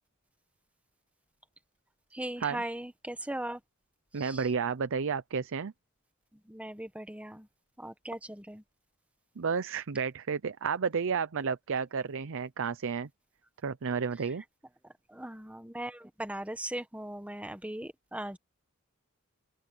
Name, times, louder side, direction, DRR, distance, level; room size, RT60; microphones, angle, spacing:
voice 1, 2.1-3.6 4.2-4.5 6.3-7.5 7.8-8.6 14.8-18.4, right 1 dB, 5° right, 1.4 m, -39 dB
voice 2, 4.1-5.7 9.4-13.1 13.6-14.4, right 5 dB, 60° right, 0.6 m, -31 dB
open air
head